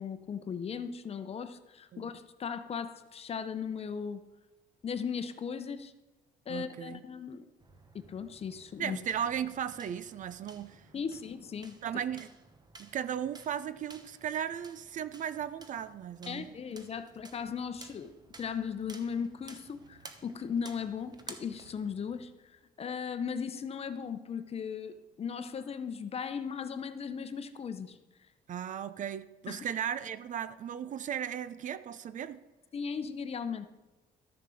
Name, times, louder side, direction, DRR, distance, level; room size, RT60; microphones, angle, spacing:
voice 1, 0.0-4.2 4.8-5.9 6.5-7.4 7.9-9.0 10.9-11.8 16.3-28.0 29.5-29.6 32.7-33.7, left 6 dB, 35° left, 0.8 m, -37 dB
voice 2, 6.5-7.0 8.8-10.9 11.8-12.3 12.8-16.5 28.5-32.4, right 9 dB, 50° right, 0.6 m, -36 dB
sound 1, 7.6-22.4, right 3 dB, 25° right, 1.0 m, -54 dB
13.0 x 6.6 x 5.0 m
cardioid pair, 110°, 17 cm